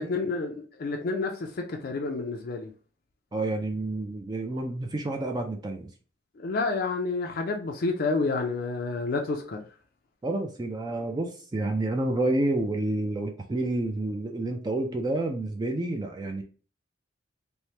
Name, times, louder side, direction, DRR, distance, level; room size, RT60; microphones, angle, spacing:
voice 1, 0.0-2.7 6.4-9.6, left 3 dB, 50° left, 0.4 m, -29 dB
voice 2, 3.3-5.9 10.2-16.4, right 2 dB, 20° right, 0.3 m, -29 dB
3.1 x 2.1 x 2.7 m
head